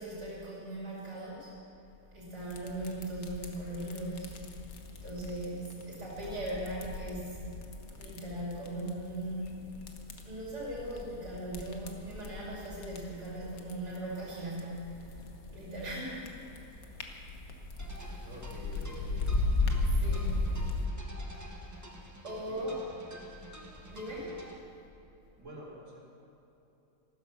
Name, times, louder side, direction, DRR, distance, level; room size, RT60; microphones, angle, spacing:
voice 1, 0.0-1.5 2.1-4.3 5.0-7.5 8.0-9.7 10.2-15.2 15.5-16.7 19.8-20.5 22.2-22.8 23.9-24.3, right 1 dB, 80° right, -6 dB, 3.6 m, -39 dB
sound 1, 2.4-20.9, left 2 dB, 65° left, 1.6 m, -37 dB
sound 2, 17.8-24.6, right 1 dB, 10° right, 1.0 m, -50 dB
voice 2, 18.2-19.4 22.5-22.6 25.3-26.0, equal, 50° right, -6 dB, 4.4 m, -47 dB
14.5 x 13.0 x 5.9 m, 2.9 s
omnidirectional pair, 1.7 m